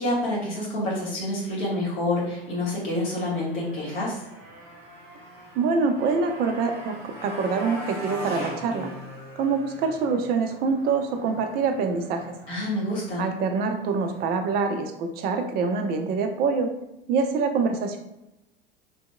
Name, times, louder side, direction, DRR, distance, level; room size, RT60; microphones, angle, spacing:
voice 1, 0.0-4.2 12.5-13.2, left 1 dB, 45° left, -5 dB, 1.5 m, -27 dB
Motorcycle, 2.1-14.2, equal, 20° left, 1.2 m, -42 dB
voice 2, 5.6-8.9 9.4-12.3 13.2-16.7 17.1-18.0, right 4 dB, 35° right, 5 dB, 0.5 m, -25 dB
3.3 x 2.8 x 2.2 m, 0.91 s
figure-of-eight pair, 80°, 29 cm